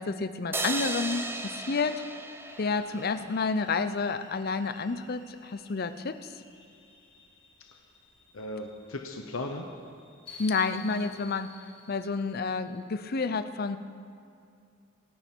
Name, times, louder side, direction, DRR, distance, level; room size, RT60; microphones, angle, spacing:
voice 1, 0.0-2.0 2.6-6.4 10.4-11.5 11.9-13.8, left 4 dB, 50° left, 11 dB, 0.6 m, -30 dB
sound 1, 0.5-3.8, right 2 dB, 10° right, 0.6 m, -36 dB
sound 2, 2.4-12.8, left 5 dB, 25° left, 3.1 m, -53 dB
voice 2, 8.3-9.7, left 2 dB, 85° left, 3 dB, 1.0 m, -36 dB
26.5 x 9.1 x 4.5 m, 2.5 s
head